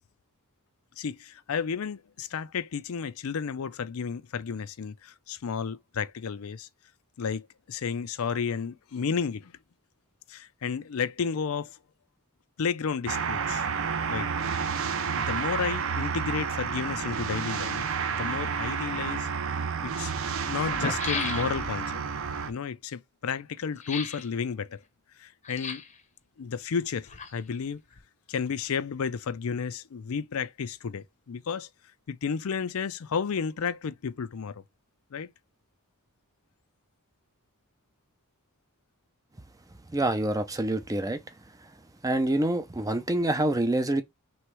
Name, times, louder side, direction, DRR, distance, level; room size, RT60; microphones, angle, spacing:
voice 1, 1.0-6.7 7.2-7.4 7.7-9.5 10.3-11.8 12.6-13.6 14.1-14.6 15.1-17.8 18.1-19.3 19.8-20.1 20.5-22.0 22.5-24.8 25.2-25.8 26.4-27.8 28.3-31.7 32.1-34.6 35.1-35.3, left 6 dB, 70° left, 0.5 m, -32 dB
sound 1, 13.1-22.5, right 6 dB, 65° right, 0.6 m, -30 dB
sound 2, 20.6-21.8 23.8-24.3 25.4-26.0 26.8-27.6 27.9-28.0, left 5 dB, 35° left, 0.8 m, -35 dB
voice 2, 39.9-41.2 42.0-44.0, right 1 dB, 15° right, 0.6 m, -26 dB
3.5 x 3.1 x 4.6 m
head